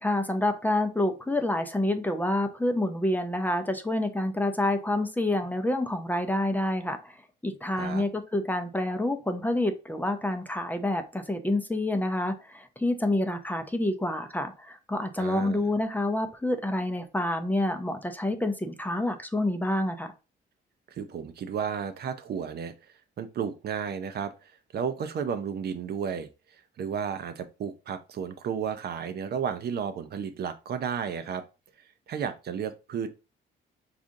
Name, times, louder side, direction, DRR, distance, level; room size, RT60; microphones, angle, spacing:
voice 1, 0.0-7.2 7.4-20.1, left 1 dB, 10° left, 0.5 m, -28 dB
voice 2, 15.2-15.6 20.9-22.7 23.2-26.3 26.8-31.4 32.1-33.1, right 7 dB, 55° right, 0.5 m, -33 dB
4.9 x 2.5 x 2.6 m
cardioid pair, 90°, 20 cm